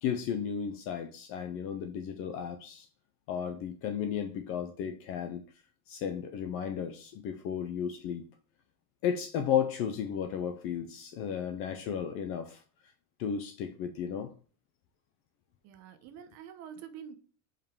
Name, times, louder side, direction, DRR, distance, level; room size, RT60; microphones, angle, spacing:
voice 1, 0.0-2.9 3.3-5.4 5.9-8.2 9.0-12.6 13.2-14.3, left 8 dB, 30° left, 0.4 m, -34 dB
voice 2, 15.6-17.1, right 8 dB, 35° right, 0.8 m, -46 dB
5.3 x 4.9 x 4.5 m
cardioid pair, 180°, 46 cm